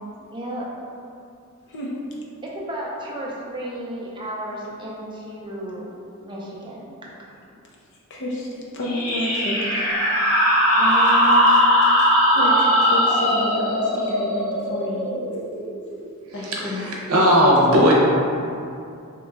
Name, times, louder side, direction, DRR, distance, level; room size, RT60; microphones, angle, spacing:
voice 1, 0.3-0.7 2.4-5.9 6.2-6.9 10.7-11.6 11.8-11.9, equal, 20° right, -4 dB, 0.5 m, -32 dB
voice 2, 8.1-9.6 10.6-11.1 12.3-15.2 16.3-16.9, left 1 dB, 55° left, -3 dB, 0.6 m, -30 dB
sound 1, 8.8-16.1, equal, 85° left, 1.2 m, -19 dB
voice 3, 16.4-17.9, equal, 80° right, -3 dB, 0.7 m, -17 dB
2.9 x 2.3 x 3.7 m, 2.5 s
head